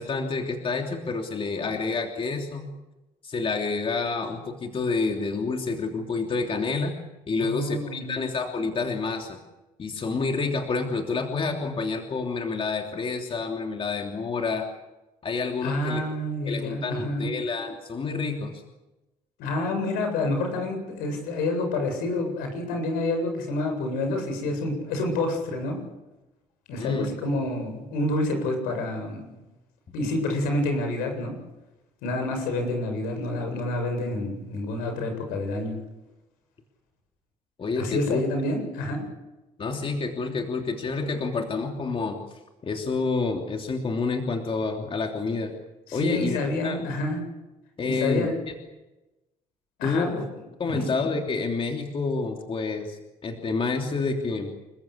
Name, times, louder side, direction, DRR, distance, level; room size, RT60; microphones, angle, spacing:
voice 1, 0.0-2.7 3.2-6.9 7.3-9.4 9.8-14.7 15.2-16.0 16.5-18.6 26.8-27.1 37.6-38.2 39.6-42.2 42.6-45.5 45.9-46.4 46.6-46.8 47.8-48.5 49.8-50.1 50.6-54.5, left 4 dB, 40° left, 3 dB, 3.1 m, -28 dB
voice 2, 7.4-8.2 15.6-17.3 19.4-25.8 26.7-29.4 29.9-31.3 32.0-35.8 37.7-39.0 45.9-47.2 47.8-48.4 49.8-50.2 50.7-50.9, left 2 dB, 90° left, 5 dB, 7.8 m, -28 dB
29.0 x 15.0 x 8.6 m, 1.0 s
cardioid pair, 90°, 15 cm